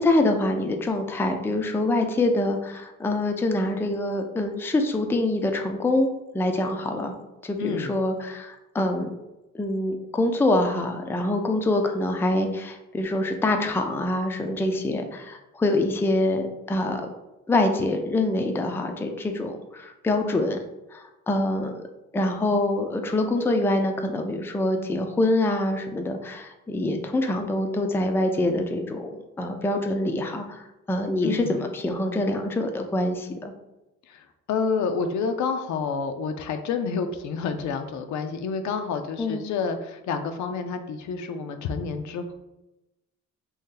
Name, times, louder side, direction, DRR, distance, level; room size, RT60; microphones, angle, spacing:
voice 1, 0.0-7.1 7.4-9.1 9.5-17.1 17.5-20.6 20.9-21.8 22.1-30.6 30.9-33.5 39.2-39.4, left 2 dB, 10° left, 4 dB, 0.3 m, -25 dB
voice 2, 7.6-8.0 31.2-31.6 34.1-42.3, left 5 dB, 70° left, 7 dB, 0.5 m, -29 dB
2.8 x 2.7 x 3.7 m, 0.97 s
cardioid pair, 90°, 30 cm